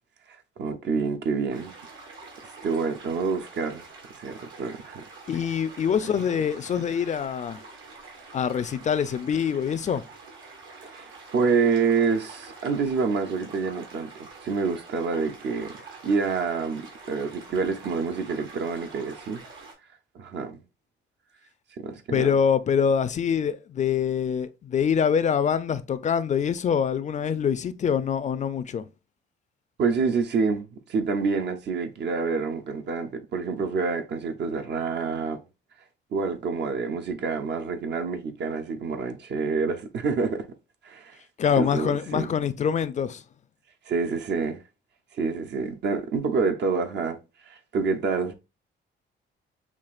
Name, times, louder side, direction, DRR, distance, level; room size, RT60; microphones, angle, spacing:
voice 1, 0.6-1.7 2.6-3.9 4.2-5.0 10.8-15.8 16.0-19.4 20.1-20.6 21.8-22.3 29.8-35.4 36.1-40.4 40.8-41.2 41.6-42.3 43.9-44.6 45.2-47.2 47.5-48.3, right 5 dB, 60° right, 0.6 m, -27 dB
sound 1, 1.5-19.7, right 3 dB, 80° right, 1.5 m, -46 dB
voice 2, 5.3-7.6 8.3-10.0 22.1-28.8 41.4-43.2, left 7 dB, 35° left, 0.4 m, -25 dB
5.8 x 2.4 x 2.4 m
cardioid pair, 90°, 20 cm